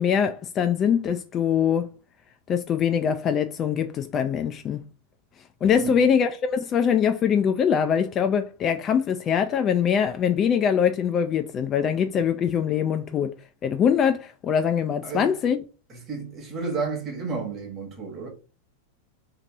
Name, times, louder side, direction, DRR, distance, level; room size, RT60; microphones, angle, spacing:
voice 1, 0.0-1.9 2.5-4.8 5.6-13.3 13.6-15.6, left 7 dB, 30° left, 0.3 m, -23 dB
voice 2, 15.9-18.3, right 4 dB, 25° right, 1.1 m, -31 dB
2.9 x 2.9 x 3.7 m
figure-of-eight pair, 90°, 0 cm